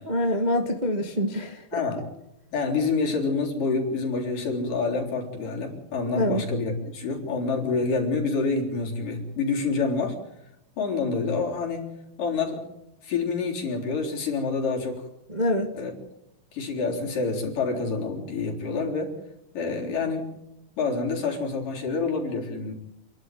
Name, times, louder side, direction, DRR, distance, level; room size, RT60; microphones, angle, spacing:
voice 1, 0.0-1.6 6.1-6.4 15.3-15.7, left 1 dB, 25° right, 3 dB, 0.9 m, -25 dB
voice 2, 1.7-2.0 2.5-10.2 10.8-11.9 12.2-12.6 13.0-15.0 15.7-15.9 16.5-19.2 19.5-20.3 20.8-22.7, left 4 dB, 60° left, 0 dB, 5.4 m, -27 dB
28.5 x 11.5 x 9.3 m, 0.86 s
omnidirectional pair, 4.3 m